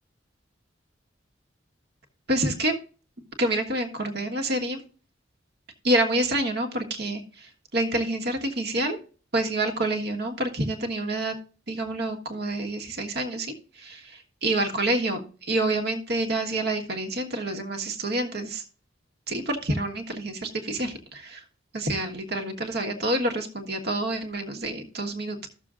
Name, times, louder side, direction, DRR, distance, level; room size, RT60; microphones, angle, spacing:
voice 1, 2.3-2.8 3.4-4.8 5.8-9.0 9.3-11.3 11.7-15.2 15.5-18.6 19.3-21.4 21.7-25.5, right 1 dB, 55° right, 5 dB, 1.4 m, -28 dB
14.0 x 6.8 x 2.5 m, 0.38 s
head